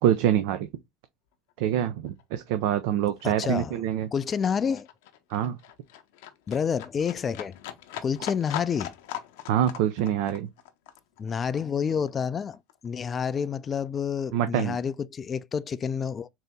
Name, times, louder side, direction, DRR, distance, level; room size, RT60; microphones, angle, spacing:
voice 1, 0.0-0.7 1.6-4.1 5.3-5.6 9.5-10.5 14.3-14.8, right 10 dB, 70° right, 0.5 m, -25 dB
Livestock farm animals working animals, 1.5-1.6 1.9-12.9 13.2-14.2 14.5-14.6, left 11 dB, 75° left, 0.6 m, -41 dB
voice 2, 3.2-3.8 4.1-4.9 6.5-7.6 8.0-8.9 11.2-16.3, left 7 dB, 30° left, 0.4 m, -29 dB
3.9 x 2.7 x 3.5 m
hypercardioid pair, 90°, 0 cm